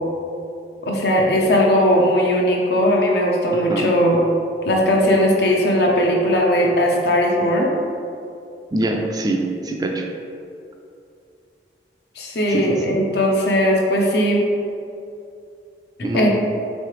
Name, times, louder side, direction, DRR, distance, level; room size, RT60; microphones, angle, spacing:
voice 1, 0.8-4.2 4.6-7.7 12.2-14.4 16.1-16.3, equal, 65° left, -1 dB, 0.7 m, -18 dB
voice 2, 3.5-3.9 8.7-10.1 12.5-12.7 16.0-16.3, right 2 dB, 20° right, 1 dB, 0.3 m, -23 dB
3.3 x 3.2 x 4.7 m, 2.5 s
head